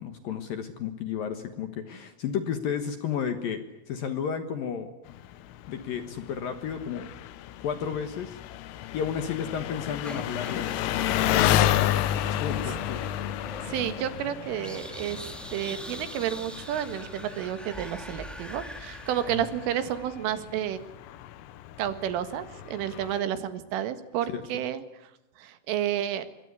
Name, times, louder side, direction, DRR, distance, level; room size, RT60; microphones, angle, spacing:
voice 1, 0.0-3.6 3.9-4.9 5.7-7.1 7.6-8.4 8.9-11.2 12.4-13.0 19.2-19.4 24.3-24.6, left 7 dB, 65° left, 9 dB, 2.4 m, -32 dB
Engine, 5.1-23.2, left 12 dB, 85° left, 3.7 m, -31 dB
sound 1, 10.0-20.2, equal, ahead, 0.4 m, -42 dB
voice 2, 13.6-20.8 21.8-24.8 25.4-26.3, right 10 dB, 80° right, 11 dB, 4.2 m, -31 dB
26.0 x 22.5 x 9.6 m, 0.92 s
omnidirectional pair, 5.7 m